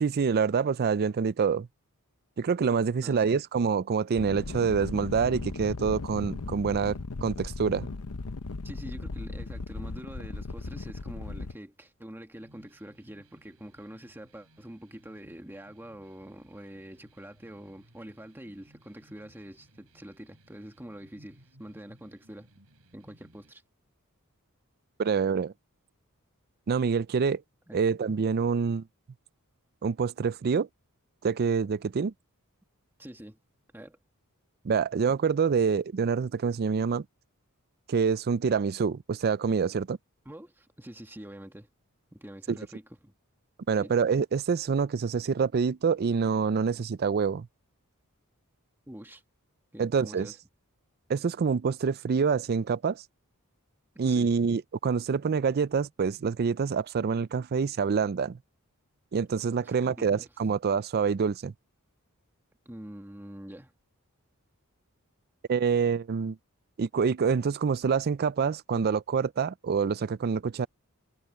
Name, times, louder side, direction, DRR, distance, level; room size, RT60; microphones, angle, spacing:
voice 1, 0.0-1.7 2.4-7.9 25.0-25.5 26.7-27.4 27.7-28.9 29.8-30.7 31.2-32.1 34.6-37.0 37.9-40.0 42.5-42.6 43.7-47.5 49.8-50.3 51.1-53.0 54.0-58.4 59.1-61.5 65.5-66.4 66.8-70.7, right 5 dB, 45° right, 0.4 m, -26 dB
voice 2, 3.0-3.4 8.6-22.5 22.9-23.6 27.7-27.9 33.0-33.4 33.7-34.0 40.2-41.7 42.1-43.1 43.8-43.9 48.9-49.2 49.7-50.4 53.9-54.4 59.6-60.3 62.6-63.7, right 1 dB, 10° right, 1.5 m, -45 dB
sound 1, 4.2-11.5, left 3 dB, 75° left, 0.8 m, -37 dB
sound 2, 12.4-23.5, right 1 dB, 70° right, 4.5 m, -61 dB
head